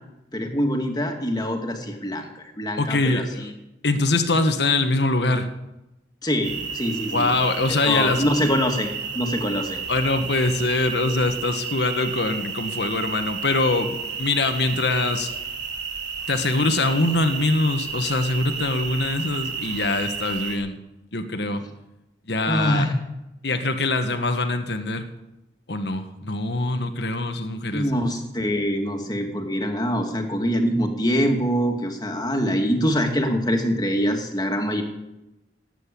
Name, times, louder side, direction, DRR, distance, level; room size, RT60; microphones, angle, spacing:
voice 1, 0.3-3.5 6.2-7.3 7.7-9.8 22.5-22.9 27.7-34.8, equal, 20° left, 3 dB, 2.2 m, -24 dB
voice 2, 2.8-3.5 3.8-5.5 7.1-8.2 9.9-15.3 16.3-20.8 21.1-21.6 22.3-22.9 23.4-25.1 25.7-27.9, left 2 dB, 70° left, 8 dB, 1.4 m, -23 dB
sound 1, 6.4-20.6, right 5 dB, 80° right, 3.1 m, -32 dB
17.5 x 9.1 x 8.5 m, 0.95 s
head